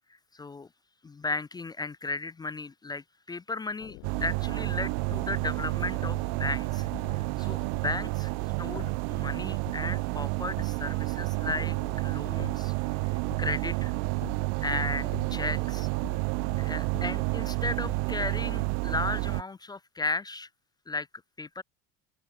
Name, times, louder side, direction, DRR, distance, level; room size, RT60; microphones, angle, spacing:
voice 1, 0.3-0.7 1.0-8.3 8.6-12.7 13.0-13.1 13.4-13.9 14.6-15.9 16.6-20.5 20.9-21.1 21.4-21.6, left 3 dB, 10° left, 0.4 m, -35 dB
sound 1, 3.8-18.8, left 40 dB or more, 75° left, 3.1 m, -48 dB
sound 2, 4.0-19.4, right 40 dB or more, 75° right, 0.8 m, -30 dB
open air
cardioid pair, 140°, 35 cm